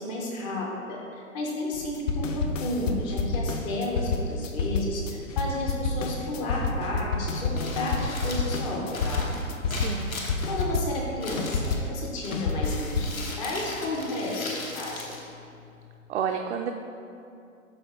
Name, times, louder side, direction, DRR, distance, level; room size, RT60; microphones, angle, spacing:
voice 1, 0.0-9.3 10.5-15.1, left 1 dB, 10° left, -2 dB, 0.4 m, -32 dB
sound 1, 1.7-11.9 12.3-13.2, left 4 dB, 65° left, 0.6 m, -29 dB
Crumpling crinkling, 7.4-16.0, left 2 dB, 80° left, 1.2 m, -39 dB
voice 2, 9.7-10.2 16.1-16.7, right 7 dB, 55° right, 3 dB, 0.5 m, -30 dB
12.0 x 4.0 x 3.0 m, 2.5 s
figure-of-eight pair, 110°, 41 cm